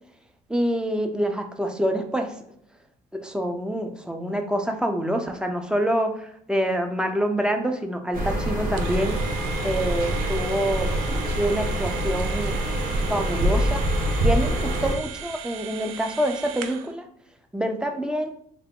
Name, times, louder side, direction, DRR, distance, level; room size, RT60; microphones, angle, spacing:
voice 1, 0.5-2.4 3.2-9.2 9.6-10.9 11.4-12.6 13.1-13.8 14.2-17.1 17.5-18.3, equal, 5° right, 5 dB, 0.7 m, -26 dB
sound 1, 8.1-15.0, right 1 dB, 50° right, 1.3 m, -25 dB
sound 2, 8.8-16.9, right 8 dB, 85° right, 0.4 m, -38 dB
3.6 x 2.7 x 3.7 m, 0.70 s
hypercardioid pair, 65°, 18 cm